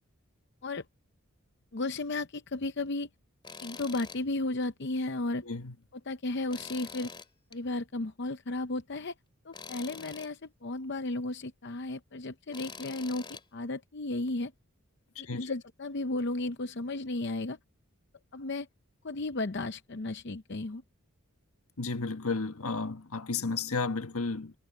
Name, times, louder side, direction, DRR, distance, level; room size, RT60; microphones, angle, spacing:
voice 1, 1.7-3.1 3.6-5.4 6.1-7.1 7.5-9.1 9.4-14.5 15.2-17.6 18.3-18.7 19.0-20.8, left 2 dB, 50° left, 0.7 m, -34 dB
Tools, 3.4-4.2 4.6-4.7 6.5-7.6 9.5-10.3 12.5-13.4, left 5 dB, 20° left, 2.7 m, -45 dB
voice 2, 5.4-5.7 15.2-15.5 21.8-24.5, left 4 dB, 85° left, 1.4 m, -33 dB
head